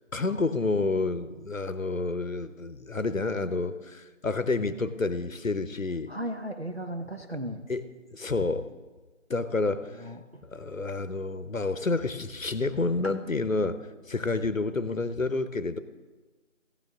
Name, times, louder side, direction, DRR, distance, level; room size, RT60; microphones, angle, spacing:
voice 1, 0.1-6.1 7.7-7.8 8.1-8.7 9.3-9.9 10.5-13.8 14.1-15.8, left 3 dB, 80° left, 13 dB, 0.9 m, -29 dB
voice 2, 6.1-7.6 9.9-10.4, right 1 dB, 50° right, 4 dB, 0.7 m, -36 dB
15.0 x 9.2 x 3.7 m, 1.2 s
figure-of-eight pair, 180°, 39 cm